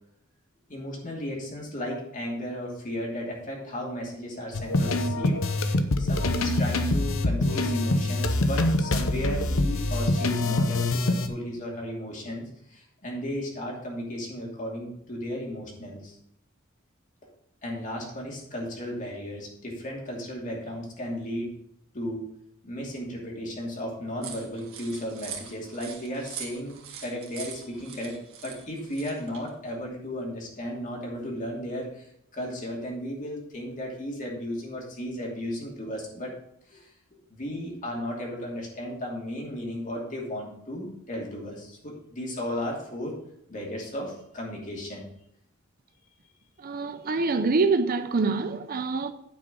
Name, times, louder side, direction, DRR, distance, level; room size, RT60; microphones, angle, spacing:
voice 1, 0.7-16.2 17.6-21.5 21.9-22.2 22.6-36.3 36.7-36.9 37.3-43.2 43.5-45.1, equal, 40° left, 2.7 m, -35 dB
sound 1, 4.5-11.3, left 2 dB, 70° left, 0.8 m, -25 dB
sound 2, 24.2-29.5, right 7 dB, 75° right, 1.9 m, -42 dB
voice 2, 46.6-49.1, right 4 dB, 45° right, 0.6 m, -25 dB
9.1 x 5.0 x 6.3 m
head